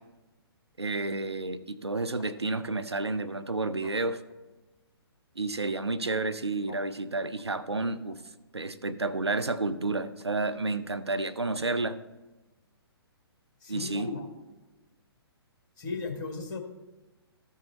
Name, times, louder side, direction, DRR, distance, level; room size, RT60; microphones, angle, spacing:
voice 1, 0.8-4.2 5.4-8.2 8.5-12.0 13.7-14.1, right 2 dB, 85° right, 11 dB, 0.6 m, -30 dB
voice 2, 13.6-14.3 15.8-16.6, left 4 dB, 45° left, 4 dB, 1.5 m, -36 dB
13.5 x 6.4 x 4.1 m, 1.1 s
figure-of-eight pair, 125°, 14 cm